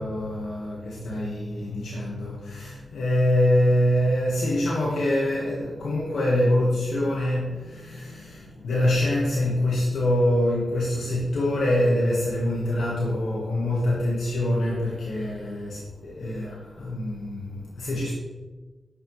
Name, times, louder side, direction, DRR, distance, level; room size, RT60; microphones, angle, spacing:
voice 1, 0.0-18.1, left 1 dB, 85° left, -4 dB, 1.3 m, -25 dB
10.0 x 5.5 x 3.1 m, 1.3 s
cardioid pair, 45°, 0 cm